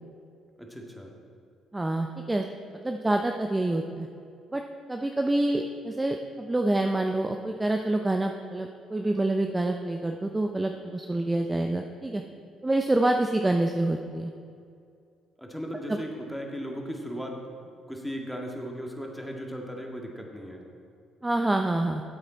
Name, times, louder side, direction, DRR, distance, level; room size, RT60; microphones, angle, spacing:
voice 1, 0.6-1.1 15.4-17.4 17.9-20.6, equal, ahead, 0 dB, 2.0 m, -36 dB
voice 2, 1.7-2.5 2.8-4.1 4.5-4.6 4.9-12.2 12.6-14.3 15.9-16.0 21.2-22.0, right 2 dB, 15° right, 4 dB, 0.6 m, -27 dB
13.0 x 8.1 x 4.1 m, 2.4 s
hypercardioid pair, 50°, 0 cm